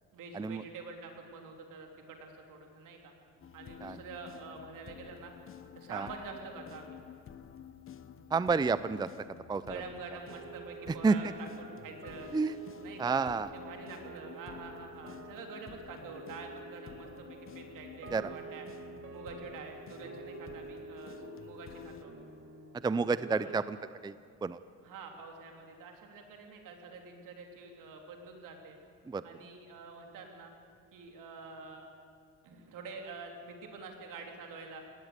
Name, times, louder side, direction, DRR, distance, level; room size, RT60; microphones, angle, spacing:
voice 1, 0.1-3.1 3.5-5.3 5.8-7.0 9.6-12.3 12.8-13.2 13.5-18.7 19.1-22.2 23.4-23.6 24.8-28.8 29.2-30.5 30.9-31.9 32.4-34.8, right 4 dB, 75° right, 3 dB, 3.4 m, -47 dB
sound 1, 3.4-22.0, left 8 dB, 40° left, 1.1 m, -51 dB
voice 2, 8.3-9.1 9.5-9.8 11.0-11.3 12.3-12.5 13.0-13.5 18.1-18.3 22.8-23.8 24.0-24.1 24.4-24.6 29.1-29.2, right 4 dB, 15° right, 15 dB, 0.5 m, -29 dB
sound 2, 10.3-23.6, right 4 dB, 40° right, 2.0 m, -49 dB
18.5 x 18.0 x 8.2 m, 2.3 s
cardioid pair, 90°, 32 cm